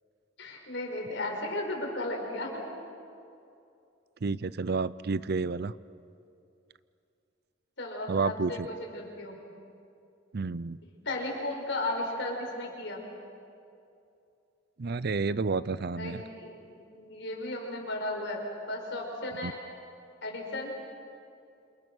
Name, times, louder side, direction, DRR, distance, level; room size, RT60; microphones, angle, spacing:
voice 1, 0.4-2.6 7.8-9.4 11.1-13.0 16.0-16.6 16.9-19.6 20.2-20.7, left 1 dB, 65° left, 1 dB, 5.4 m, -35 dB
voice 2, 4.2-5.7 8.1-8.7 10.3-10.8 14.8-16.2 19.4-19.5, right 4 dB, 55° right, 17 dB, 0.5 m, -30 dB
28.5 x 27.5 x 6.3 m, 2.6 s
head